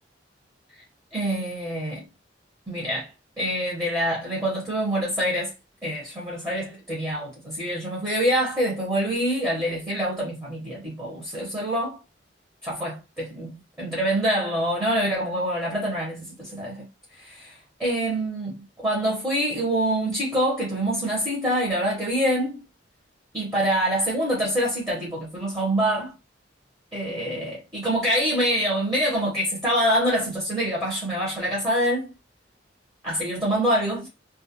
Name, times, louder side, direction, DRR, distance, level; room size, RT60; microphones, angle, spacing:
voice 1, 1.1-2.0 2.7-3.1 3.4-5.5 5.8-12.0 12.6-16.8 17.1-22.6 23.3-26.1 26.9-32.1 33.0-34.1, equal, 15° right, 0.8 m, -25 dB
2.3 x 2.1 x 2.7 m
head